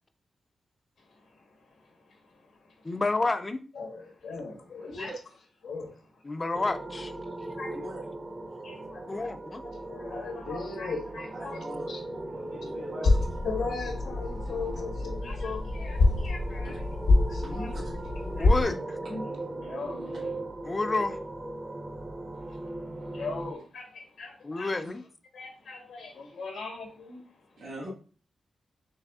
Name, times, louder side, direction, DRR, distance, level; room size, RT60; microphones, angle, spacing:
voice 1, 1.1-1.4 1.8-3.0 3.7-5.1 5.6-6.2 7.2-7.8 8.6-9.3 9.6-12.0 13.0-13.2 13.4-16.8 17.3-17.8 18.4-18.5 19.1-19.2 19.6-20.4 22.5-22.6 23.1-24.7 25.3-27.5, left 4 dB, 90° left, 1.1 m, -39 dB
voice 2, 2.8-3.6 6.2-7.1 9.1-9.6 18.4-18.7 20.6-21.2 24.4-25.0, left 3 dB, 25° left, 0.4 m, -29 dB
voice 3, 4.8-5.2 7.6-8.0 11.3-11.9 12.1-13.1 16.6-16.8 17.7-17.8 27.6-27.9, equal, 75° right, 1.3 m, -41 dB
sound 1, 6.5-23.5, right 2 dB, 25° right, 0.6 m, -39 dB
sound 2, 13.0-18.6, left 2 dB, 70° left, 0.7 m, -26 dB
5.9 x 3.3 x 2.3 m
wide cardioid pair, 170°, 0 cm